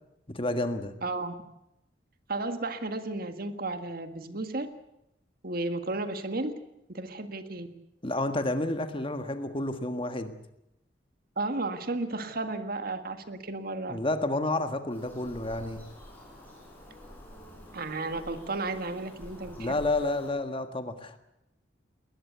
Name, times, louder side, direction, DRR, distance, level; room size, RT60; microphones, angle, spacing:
voice 1, 0.3-0.9 8.0-10.3 13.9-15.8 19.6-21.2, left 2 dB, 30° left, 8 dB, 1.6 m, -30 dB
voice 2, 1.0-1.3 2.3-4.7 5.4-6.5 6.9-7.7 11.4-14.0 17.7-19.7, right 2 dB, 55° right, 9 dB, 1.7 m, -33 dB
Bird vocalization bird call bird song, 14.9-20.3, equal, 10° left, 7.1 m, -48 dB
20.0 x 20.0 x 8.0 m, 0.84 s
head